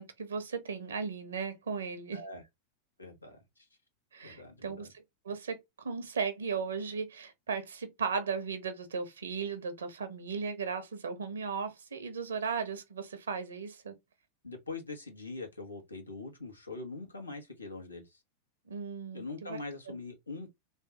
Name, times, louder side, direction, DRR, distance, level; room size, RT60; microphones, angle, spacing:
voice 1, 0.0-2.2 4.1-14.0 18.7-19.6, right 5 dB, 70° right, 1.0 m, -36 dB
voice 2, 2.1-2.4 3.0-3.7 4.2-4.9 14.4-18.2 19.1-20.5, left 3 dB, 80° left, 1.2 m, -43 dB
3.5 x 3.3 x 2.9 m
figure-of-eight pair, 90°, 0 cm